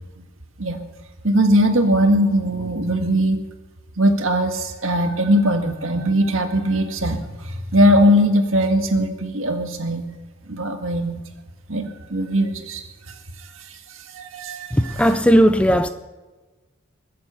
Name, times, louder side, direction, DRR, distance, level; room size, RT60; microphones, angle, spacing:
voice 1, 1.2-3.4 4.0-10.0 10.5-11.2 11.7-12.8 14.1-15.2, equal, 75° right, 1.8 m, -20 dB
voice 2, 14.8-15.9, equal, 5° left, 0.5 m, -16 dB
21.5 x 7.8 x 6.7 m
head